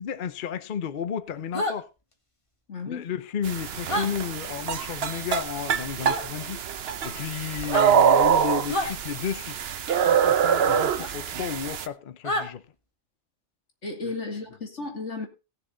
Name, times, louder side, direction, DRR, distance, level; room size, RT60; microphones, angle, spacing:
voice 1, 0.0-1.9 2.9-9.6 10.0-12.6 14.0-14.1, left 8 dB, 50° left, 0.8 m, -33 dB
sound 1, 1.5-1.8 3.9-4.1 6.0-6.2 7.6-7.9 8.7-8.9 11.0-11.1 12.2-12.5, left 1 dB, 30° left, 1.7 m, -28 dB
voice 2, 2.7-3.1 13.8-15.3, left 3 dB, 85° left, 2.8 m, -34 dB
sound 2, 3.4-11.9, right 8 dB, 65° right, 1.0 m, -24 dB
17.5 x 6.9 x 3.9 m
omnidirectional pair, 1.2 m